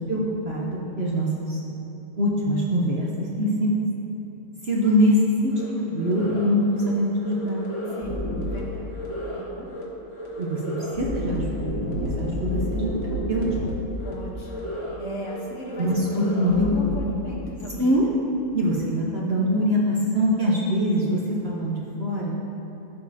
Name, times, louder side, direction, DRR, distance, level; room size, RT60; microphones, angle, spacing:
voice 1, 0.1-1.6 2.2-3.7 4.6-5.1 5.4-7.7 10.4-12.9 13.3-13.4 15.8-16.7 17.8-18.1 18.5-22.4, equal, 50° right, -4 dB, 0.9 m, -24 dB
sound 1, 5.5-5.7 6.0-6.5 6.7-6.9 7.2-8.6 8.9-9.4 9.7-9.8 10.1-13.7 14.0-14.1 14.5-15.0 15.2-15.4 15.7-16.9, equal, 20° left, 1.0 m, -31 dB
voice 2, 7.9-8.2 8.5-8.9 9.3-9.7 14.0-15.9 16.4-17.9, equal, 55° left, -3 dB, 1.3 m, -38 dB
14.5 x 5.2 x 2.7 m, 2.9 s
omnidirectional pair, 1.7 m